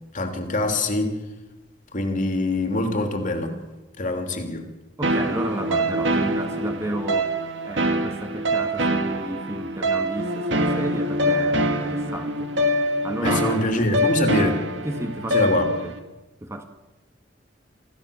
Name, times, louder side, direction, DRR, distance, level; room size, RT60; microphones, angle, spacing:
voice 1, 0.1-1.2 1.9-3.6 4.0-4.6 13.2-14.6 15.3-15.6, left 1 dB, 45° left, 4 dB, 3.1 m, -24 dB
voice 2, 5.0-7.3 7.6-12.5 13.0-13.6 14.8-15.9 16.4-16.7, right 1 dB, 15° right, 5 dB, 1.7 m, -32 dB
sound 1, 5.0-16.0, equal, 65° right, 2.3 m, -24 dB
26.5 x 16.0 x 7.0 m, 1.1 s
head